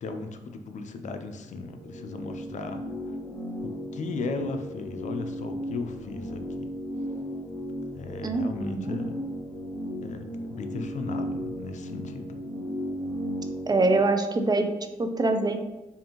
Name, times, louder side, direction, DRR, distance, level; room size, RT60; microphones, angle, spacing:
voice 1, 0.0-2.8 3.6-6.7 7.9-9.2 10.0-12.4, left 4 dB, 65° left, 6 dB, 0.4 m, -36 dB
sound 1, 1.5-14.0, equal, 10° left, 0.8 m, -35 dB
voice 2, 8.2-9.0 13.7-14.7 15.0-15.6, right 2 dB, 30° right, 6 dB, 0.5 m, -24 dB
5.0 x 2.5 x 3.0 m, 1.0 s
supercardioid pair, 50°, 14 cm